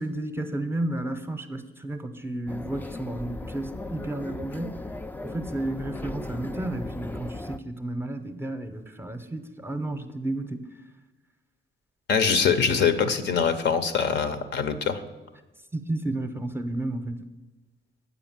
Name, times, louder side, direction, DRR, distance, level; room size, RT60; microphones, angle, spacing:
voice 1, 0.0-4.8 5.2-10.6 15.7-17.2, right 1 dB, 10° right, 8 dB, 0.7 m, -32 dB
sound 1, 2.5-7.6, left 2 dB, 10° left, 0.3 m, -37 dB
voice 2, 12.1-15.0, left 6 dB, 60° left, 9 dB, 0.8 m, -23 dB
8.3 x 4.9 x 7.3 m, 1.2 s
cardioid pair, 90°, 20 cm